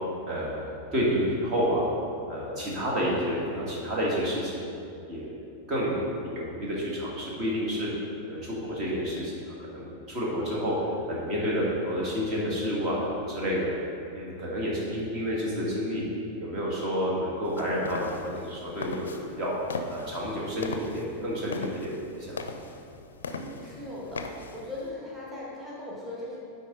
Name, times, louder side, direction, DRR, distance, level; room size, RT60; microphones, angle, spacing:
voice 1, 0.3-1.9 2.3-4.6 5.1-5.4 5.7-7.9 8.3-10.7 11.1-13.7 14.1-16.0 16.4-19.5 19.9-22.4, equal, 35° right, -5 dB, 1.6 m, -30 dB
sound 1, 17.5-24.9, left 4 dB, 65° left, 0.4 m, -40 dB
voice 2, 23.3-26.4, left 1 dB, 10° right, -6 dB, 1.6 m, -39 dB
9.9 x 4.2 x 3.8 m, 2.7 s
figure-of-eight pair, 90°, 0 cm